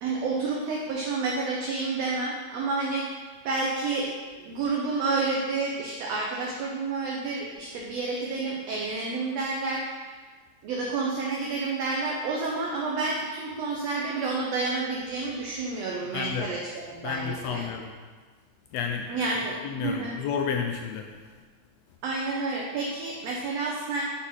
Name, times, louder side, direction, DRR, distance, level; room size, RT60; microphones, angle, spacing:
voice 1, 0.0-4.1 4.4-10.1 10.6-17.6 19.1-20.1 22.0-24.0, right 3 dB, 75° right, -2 dB, 1.6 m, -30 dB
voice 2, 16.1-16.5 17.0-17.9 18.7-19.1 19.6-21.1, left 7 dB, 90° left, 3 dB, 1.4 m, -31 dB
6.4 x 3.9 x 5.5 m, 1.4 s
omnidirectional pair, 3.5 m